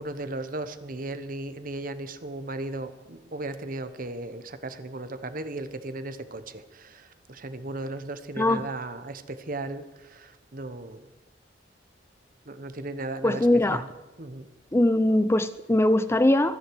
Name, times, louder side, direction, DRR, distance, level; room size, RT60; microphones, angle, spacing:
voice 1, 0.0-9.8 10.1-11.0 12.5-13.9 14.2-14.5, right 2 dB, 50° right, 11 dB, 1.1 m, -36 dB
voice 2, 8.4-8.7 13.2-13.8 14.7-16.6, left 1 dB, 15° left, 13 dB, 0.5 m, -21 dB
24.5 x 10.0 x 4.8 m, 1.1 s
head